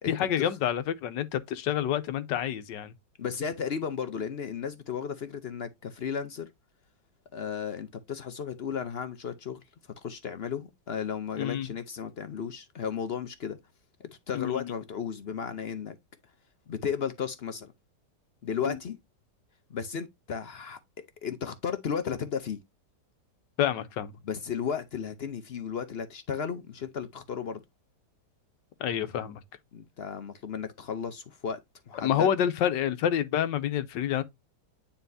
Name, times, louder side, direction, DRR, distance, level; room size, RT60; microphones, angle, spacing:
voice 1, 0.1-2.9 11.4-11.7 14.3-14.7 18.6-18.8 23.6-24.2 28.8-29.4 32.0-34.2, left 10 dB, 80° left, 1.4 m, -28 dB
voice 2, 3.2-6.5 7.3-9.6 10.0-13.6 14.0-16.0 16.7-17.7 18.4-19.0 19.7-20.8 21.2-22.6 24.2-27.6 29.7-31.6 31.9-32.3, left 7 dB, 60° left, 0.6 m, -34 dB
9.3 x 4.2 x 2.6 m
omnidirectional pair, 1.9 m